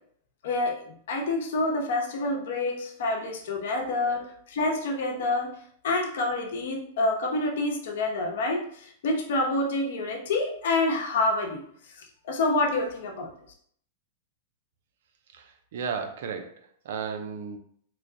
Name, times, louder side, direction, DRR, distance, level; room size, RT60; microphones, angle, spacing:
voice 1, 0.4-5.5 5.8-11.6 12.2-13.3, left 2 dB, 75° left, 1 dB, 0.8 m, -27 dB
voice 2, 15.3-17.6, right 6 dB, 70° right, 6 dB, 0.5 m, -35 dB
3.1 x 2.2 x 3.8 m, 0.63 s
supercardioid pair, 140°, 0 cm